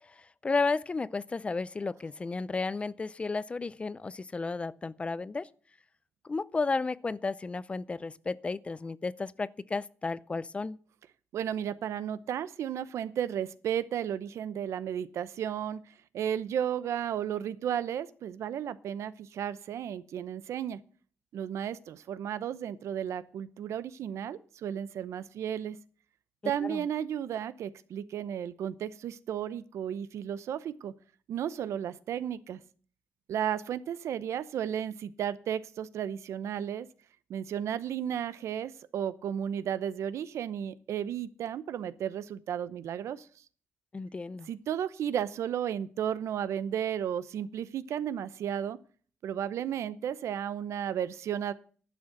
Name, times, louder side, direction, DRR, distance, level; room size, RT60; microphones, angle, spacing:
voice 1, 0.4-5.5 6.3-10.8 26.6-26.8 43.9-44.5, left 3 dB, 25° left, 0.4 m, -33 dB
voice 2, 11.3-15.8 16.1-20.8 21.3-25.8 26.4-30.9 31.3-32.6 33.3-36.9 37.3-43.2 44.5-48.8 49.2-51.5, right 9 dB, 80° right, 0.8 m, -33 dB
11.0 x 6.4 x 8.6 m
cardioid pair, 120°, 5 cm